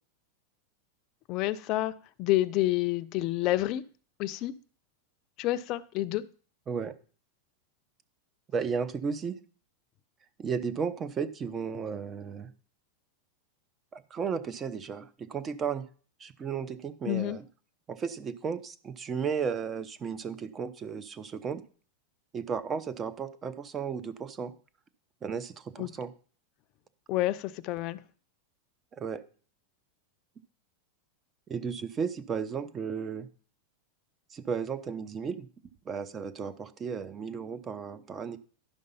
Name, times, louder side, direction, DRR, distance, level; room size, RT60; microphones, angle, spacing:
voice 1, 1.3-3.8 4.2-4.5 5.4-6.2 17.0-17.4 25.8-25.9 27.1-28.0, left 16 dB, 40° left, 0.6 m, -28 dB
voice 2, 8.5-9.3 10.4-12.5 13.9-15.9 16.2-17.4 17.9-21.6 22.3-24.5 25.2-26.1 28.9-29.2 31.5-33.3 34.3-35.5 35.9-38.4, right 6 dB, 20° right, 0.7 m, -34 dB
11.0 x 5.4 x 5.5 m
supercardioid pair, 145°, 0 cm